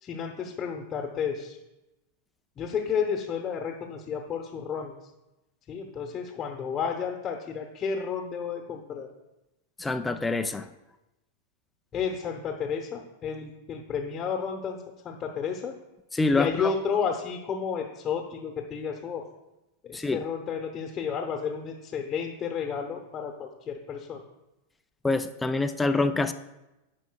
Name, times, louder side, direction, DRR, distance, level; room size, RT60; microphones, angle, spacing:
voice 1, 0.0-1.6 2.6-4.9 5.7-9.1 11.9-14.8 15.0-15.7 16.3-19.2 19.8-24.2, left 6 dB, 30° left, 2 dB, 1.0 m, -32 dB
voice 2, 9.8-10.7 16.1-16.7 19.9-20.2 25.0-26.3, left 3 dB, 10° left, 7 dB, 0.5 m, -26 dB
15.0 x 5.2 x 2.3 m, 0.98 s
hypercardioid pair, 100°, 0 cm